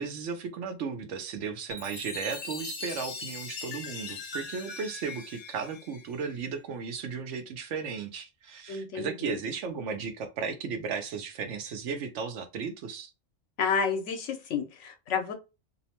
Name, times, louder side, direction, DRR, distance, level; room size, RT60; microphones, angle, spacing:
voice 1, 0.0-13.1, right 5 dB, 85° right, 1.0 m, -35 dB
Chime, 1.7-6.4, left 4 dB, 65° left, 1.0 m, -40 dB
voice 2, 8.7-9.4 13.6-15.3, left 6 dB, 85° left, 1.0 m, -30 dB
2.9 x 2.0 x 2.8 m
omnidirectional pair, 1.2 m